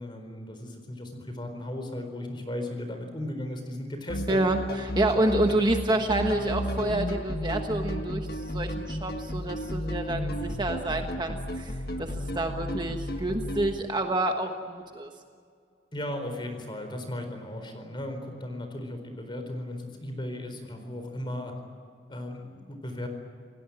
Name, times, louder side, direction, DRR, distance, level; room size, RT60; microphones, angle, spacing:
voice 1, 0.0-4.4 15.9-21.5 22.1-23.1, left 1 dB, 25° left, 6 dB, 4.4 m, -36 dB
sound 1, 4.1-13.7, equal, 55° left, 1.7 m, -33 dB
voice 2, 4.3-15.1, right 2 dB, 25° right, 4 dB, 1.2 m, -28 dB
28.5 x 17.5 x 9.0 m, 2.2 s
head